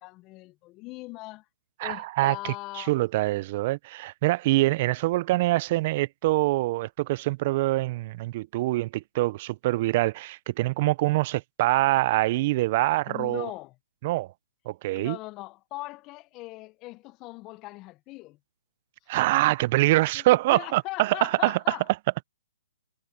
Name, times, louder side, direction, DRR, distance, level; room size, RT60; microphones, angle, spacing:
voice 1, 0.0-1.4 1.8-3.0 13.1-13.7 14.9-18.4 20.1-20.2 20.5-21.8, left 20 dB, 25° left, 1.5 m, -40 dB
voice 2, 1.8-13.5 14.0-14.3 14.7-15.2 19.1-21.8, right 18 dB, 40° right, 0.7 m, -25 dB
hypercardioid pair, 135°, 0 cm